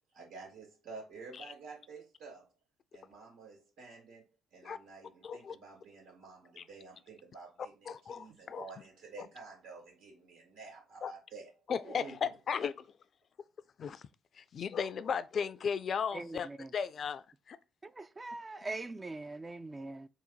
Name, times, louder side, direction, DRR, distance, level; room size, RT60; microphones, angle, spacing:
voice 1, 0.1-2.5 2.9-4.2 4.5-11.5 11.8-12.2, right 4 dB, 80° right, 2.5 m, -50 dB
voice 2, 5.2-5.5 6.6-6.7 7.9-8.0 8.6-8.7 11.0-11.1 11.7-12.8 13.8-14.0 14.4-17.6, left 7 dB, 55° left, 0.4 m, -35 dB
voice 3, 18.0-20.1, right 2 dB, 25° right, 0.3 m, -41 dB
3.9 x 2.2 x 4.4 m
hypercardioid pair, 55°, 0 cm